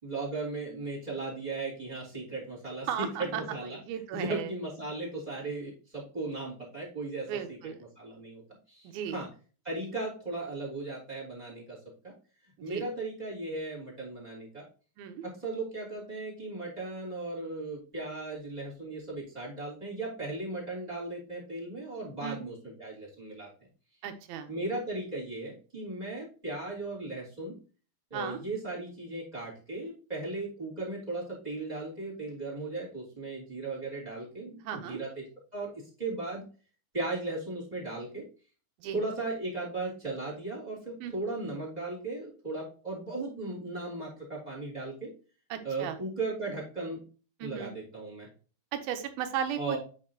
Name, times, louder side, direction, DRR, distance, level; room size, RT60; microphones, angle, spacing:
voice 1, 0.0-7.6 8.0-8.4 8.7-9.3 9.6-11.8 12.0-12.1 12.6-14.6 15.2-23.5 24.5-27.6 28.1-35.2 35.5-36.4 36.9-38.2 38.9-45.1 45.6-47.0 47.4-48.3 49.6-49.8, right 2 dB, 10° right, -2 dB, 2.8 m, -37 dB
voice 2, 2.9-4.5 7.3-7.8 8.8-9.2 12.7-12.8 15.0-15.2 22.2-22.4 24.0-24.5 28.1-28.4 34.6-35.0 38.8-39.0 41.0-41.1 45.5-46.0 47.4-47.7 48.7-49.8, right 9 dB, 80° right, 7 dB, 2.6 m, -35 dB
8.7 x 5.3 x 2.9 m, 0.37 s
omnidirectional pair, 4.4 m